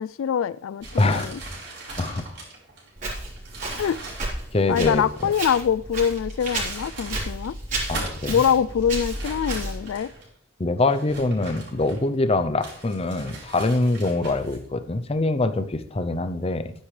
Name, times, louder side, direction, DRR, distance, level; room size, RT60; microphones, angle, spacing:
voice 1, 0.0-1.4 3.8-4.0 4.7-7.6 8.3-10.1, left 8 dB, 85° left, 18 dB, 0.3 m, -24 dB
sound 1, 0.8-5.6 6.2-7.3 7.7-8.4 9.1-10.3 10.9-12.2 12.6-14.6, right 2 dB, 60° right, 4.5 m, -39 dB
Walk footsteps, 3.0-10.0, right 2 dB, 40° right, 4.1 m, -33 dB
voice 2, 4.5-5.3 7.9-8.4 10.6-16.7, left 2 dB, 30° left, 10 dB, 0.6 m, -24 dB
12.0 x 9.9 x 3.3 m, 0.64 s
head